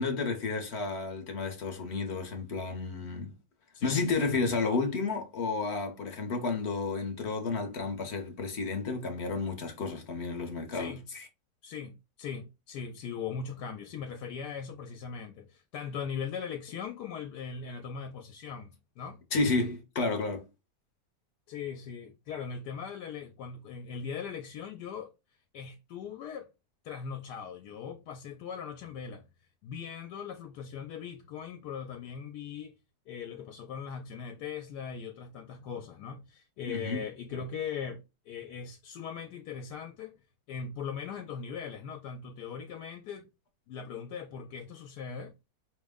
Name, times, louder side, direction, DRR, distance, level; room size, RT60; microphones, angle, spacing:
voice 1, 0.0-3.3 3.8-11.3 19.3-20.5 36.7-37.0, left 4 dB, 50° left, 0.9 m, -31 dB
voice 2, 10.7-11.0 11.6-19.2 21.5-25.1 25.5-26.5 26.8-29.2 29.6-32.7 33.1-38.0 38.3-40.2 40.5-43.3 43.7-45.3, left 6 dB, 75° left, 1.1 m, -40 dB
5.1 x 2.1 x 3.5 m
omnidirectional pair, 1.8 m